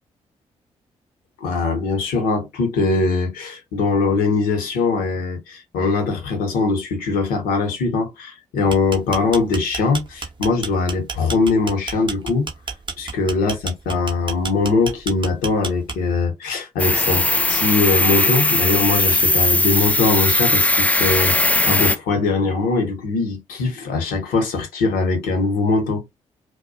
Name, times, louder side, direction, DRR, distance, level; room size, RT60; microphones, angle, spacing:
voice 1, 1.4-12.5 13.0-26.0, left 3 dB, 75° left, 0.8 m, -21 dB
sound 1, 8.6-16.2, right 4 dB, 30° right, 0.6 m, -30 dB
sound 2, 16.8-22.0, left 2 dB, 10° left, 0.3 m, -18 dB
2.3 x 2.1 x 2.5 m
hypercardioid pair, 40°, 15 cm